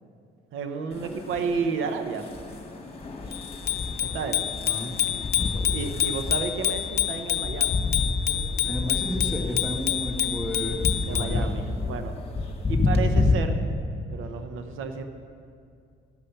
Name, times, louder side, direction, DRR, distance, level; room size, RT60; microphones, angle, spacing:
voice 1, 0.5-2.3 4.0-4.4 5.7-7.8 11.1-12.1 12.7-13.6 14.1-15.0, right 5 dB, 85° right, 7 dB, 0.7 m, -31 dB
sound 1, 0.9-13.3, left 3 dB, 30° left, 1.4 m, -30 dB
Bicycle bell, 3.3-11.4, left 11 dB, 55° left, 0.6 m, -28 dB
voice 2, 4.6-5.8 8.6-11.6, equal, 5° right, 0 dB, 1.8 m, -33 dB
13.5 x 5.6 x 6.5 m, 2.4 s
cardioid pair, 90°, 20 cm